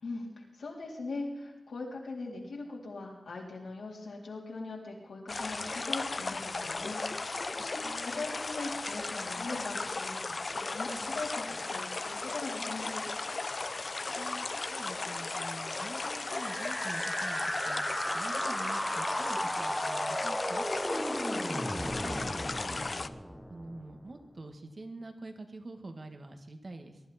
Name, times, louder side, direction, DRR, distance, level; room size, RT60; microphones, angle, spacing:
voice 1, 0.5-13.0, left 3 dB, 85° left, -2 dB, 3.7 m, -41 dB
sound 1, 5.3-23.1, left 3 dB, 50° left, 0.6 m, -36 dB
voice 2, 14.2-22.9 23.5-27.0, right 2 dB, 50° right, 5 dB, 1.8 m, -46 dB
sound 2, 16.2-24.1, equal, 5° right, 1.2 m, -35 dB
22.0 x 12.0 x 4.3 m, 0.91 s
cardioid pair, 60°, 0 cm